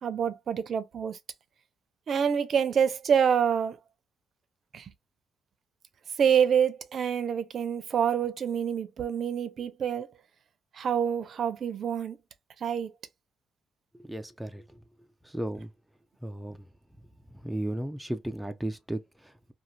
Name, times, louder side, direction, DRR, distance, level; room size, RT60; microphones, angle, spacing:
voice 1, 0.0-1.2 2.1-3.8 4.7-4.9 6.2-10.1 10.7-12.2 12.6-12.9, right 7 dB, 55° right, 0.5 m, -26 dB
voice 2, 14.0-14.7 15.2-15.7 16.2-16.7 17.4-19.5, right 1 dB, 5° right, 0.4 m, -35 dB
2.5 x 2.4 x 3.1 m
cardioid pair, 90°, 0 cm